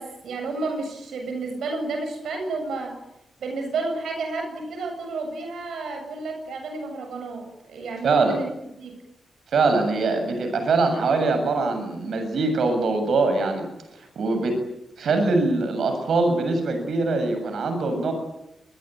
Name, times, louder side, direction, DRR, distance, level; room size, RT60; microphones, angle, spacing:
voice 1, 0.0-3.0 3.4-8.5 8.8-8.9, right 3 dB, 90° right, 5 dB, 7.5 m, -31 dB
voice 2, 8.0-8.3 9.5-13.6 14.0-14.6 15.0-18.1, right 3 dB, 70° right, 6 dB, 7.5 m, -23 dB
26.0 x 22.0 x 9.1 m, 0.86 s
wide cardioid pair, 110°, 0 cm